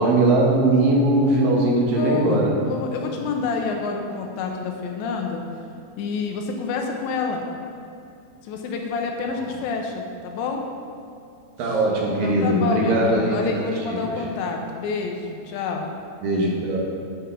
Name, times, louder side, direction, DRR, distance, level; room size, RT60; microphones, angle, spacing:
voice 1, 0.0-2.5 11.6-13.6 16.2-16.8, right 1 dB, 65° right, -3 dB, 2.4 m, -20 dB
voice 2, 1.9-5.4 6.0-7.4 8.4-10.7 11.6-11.8 12.2-15.9, left 4 dB, 80° left, 2 dB, 2.9 m, -28 dB
9.5 x 5.7 x 5.6 m, 2.5 s
omnidirectional pair, 5.3 m